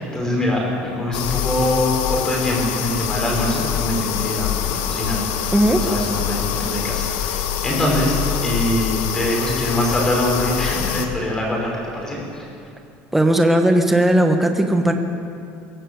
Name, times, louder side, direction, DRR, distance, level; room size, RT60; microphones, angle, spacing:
voice 1, 0.1-8.2 8.4-12.4, left 1 dB, 10° left, -2 dB, 5.6 m, -23 dB
sound 1, 1.1-11.1, left 10 dB, 80° left, 1.8 m, -25 dB
voice 2, 5.5-5.9 13.1-14.9, right 1 dB, 5° right, 4 dB, 1.4 m, -16 dB
22.5 x 18.0 x 7.9 m, 2.5 s
cardioid pair, 175°, 5 cm